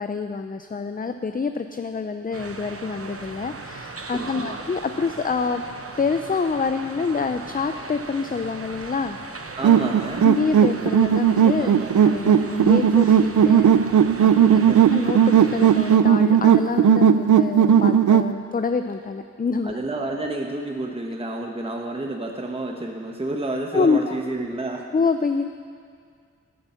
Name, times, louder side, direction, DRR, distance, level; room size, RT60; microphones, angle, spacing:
voice 1, 0.0-5.6 6.0-9.2 10.2-11.7 12.0-13.7 14.2-14.6 14.9-19.8 23.7-24.1 24.9-25.5, left 4 dB, 30° left, 8 dB, 0.4 m, -26 dB
sound 1, 2.3-16.0, right 3 dB, 50° right, 0.9 m, -38 dB
voice 2, 4.1-4.6 9.6-10.3 11.6-11.9 14.5-15.0 19.6-24.9, right 2 dB, 20° right, 1 dB, 1.0 m, -30 dB
sound 2, 9.6-18.3, right 8 dB, 80° right, 0.4 m, -16 dB
10.5 x 8.7 x 7.0 m, 2.1 s
wide cardioid pair, 55°, 30 cm